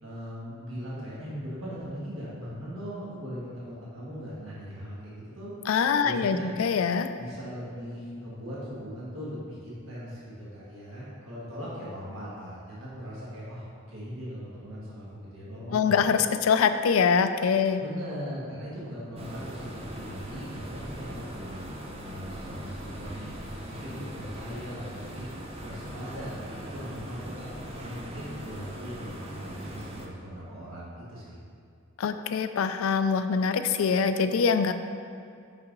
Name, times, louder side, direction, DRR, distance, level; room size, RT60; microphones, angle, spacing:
voice 1, 0.0-5.5 6.0-6.5 7.1-16.1 17.8-23.3 23.6-25.3 25.6-31.4, equal, 70° right, -8 dB, 1.5 m, -39 dB
voice 2, 5.7-7.1 15.7-17.8 32.0-34.7, left 6 dB, 75° left, 9 dB, 0.4 m, -24 dB
sound 1, 19.2-30.1, equal, 30° right, 0.5 m, -40 dB
5.7 x 5.5 x 3.9 m, 2.4 s
head